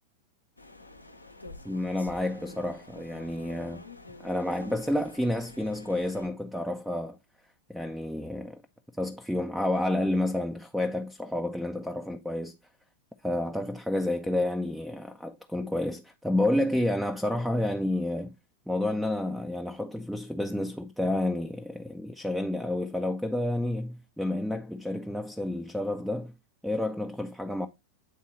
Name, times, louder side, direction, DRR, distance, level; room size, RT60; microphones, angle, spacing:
sound 1, 0.6-6.3, left 2 dB, 85° left, 0.8 m, -48 dB
voice 1, 1.6-3.8 4.2-7.2 7.7-8.6 9.0-12.6 13.2-18.3 18.7-26.3 26.6-27.7, left 1 dB, ahead, 0.5 m, -30 dB
8.4 x 3.7 x 4.2 m
figure-of-eight pair, 90°, 0 cm